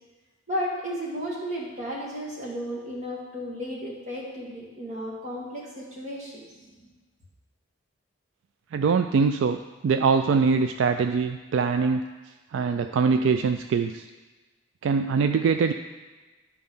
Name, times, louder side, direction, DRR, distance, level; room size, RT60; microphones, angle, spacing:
voice 1, 0.5-6.9, equal, 35° right, -4 dB, 1.9 m, -34 dB
voice 2, 8.7-12.0 12.5-14.1 14.8-15.7, right 5 dB, 65° right, 8 dB, 0.3 m, -23 dB
11.0 x 4.3 x 5.5 m, 1.3 s
head